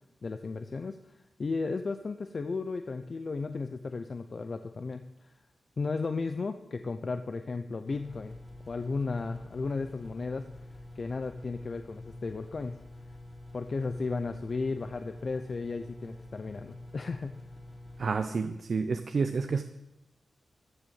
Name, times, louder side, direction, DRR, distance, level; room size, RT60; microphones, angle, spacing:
voice 1, 0.2-5.3 5.8-8.3 8.7-10.7 11.0-12.8 13.5-17.4, left 4 dB, 50° left, 9 dB, 0.6 m, -34 dB
sound 1, 7.9-18.3, left 1 dB, 20° left, 1.6 m, -47 dB
voice 2, 18.0-19.6, right 4 dB, 60° right, 8 dB, 0.7 m, -29 dB
13.5 x 7.1 x 7.8 m, 0.89 s
cardioid pair, 80°, 0 cm